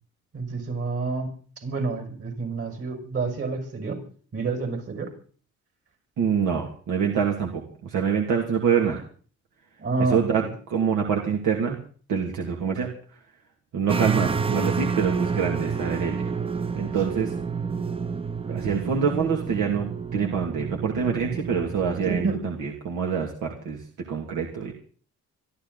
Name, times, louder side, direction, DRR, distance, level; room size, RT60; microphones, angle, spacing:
voice 1, 0.3-1.3 1.6-4.0 4.3-5.1 9.8-10.5 14.1-14.5 22.0-22.3, right 4 dB, 50° right, 4 dB, 6.6 m, -29 dB
voice 2, 6.2-9.0 10.1-10.4 10.7-11.8 12.1-13.2 13.7-16.3 16.7-17.3 18.5-24.7, right 7 dB, 80° right, 1 dB, 2.7 m, -26 dB
sound 1, 13.9-22.3, right 5 dB, 20° right, 0.8 m, -29 dB
25.5 x 13.0 x 4.1 m, 0.43 s
cardioid pair, 90°, 30 cm